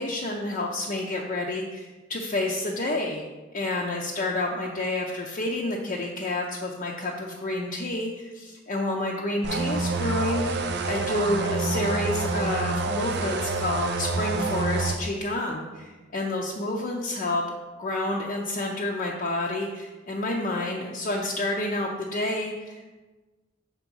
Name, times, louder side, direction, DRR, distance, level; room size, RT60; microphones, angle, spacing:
voice 1, 0.0-3.2 3.5-17.4 17.8-23.0, left 2 dB, 45° left, -2 dB, 0.6 m, -29 dB
sound 1, 9.4-15.0, right 3 dB, 60° right, 0.5 m, -27 dB
6.0 x 3.7 x 5.3 m, 1.2 s
head